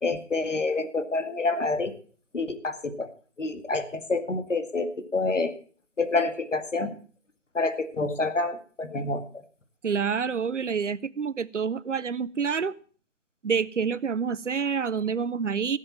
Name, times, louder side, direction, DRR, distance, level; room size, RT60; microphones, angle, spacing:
voice 1, 0.0-1.9 2.3-3.1 3.4-5.5 6.0-6.9 7.5-9.2, left 3 dB, 75° left, 9 dB, 2.1 m, -27 dB
voice 2, 9.8-12.7 13.4-15.8, right 6 dB, 70° right, 19 dB, 0.7 m, -27 dB
15.5 x 7.6 x 7.2 m, 0.42 s
figure-of-eight pair, 160°, 37 cm